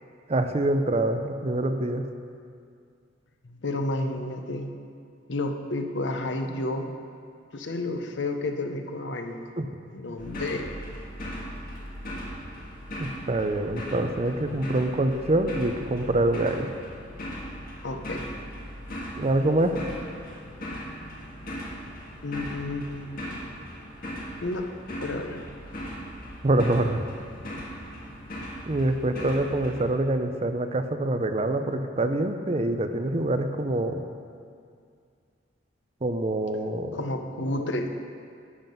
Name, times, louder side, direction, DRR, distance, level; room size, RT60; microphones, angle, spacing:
voice 1, 0.3-2.0 9.6-9.7 13.0-16.7 19.2-19.8 26.4-27.0 28.7-34.0 36.0-37.0, right 1 dB, 35° right, 8 dB, 0.5 m, -25 dB
voice 2, 3.4-4.7 5.3-6.9 7.5-9.4 9.9-10.7 17.8-18.3 22.2-23.6 24.4-24.7 25.0-25.5 36.9-37.9, left 2 dB, 75° left, 5 dB, 0.8 m, -31 dB
sound 1, 10.2-29.8, equal, 50° left, 1.7 m, -38 dB
11.5 x 7.3 x 5.3 m, 2.3 s
head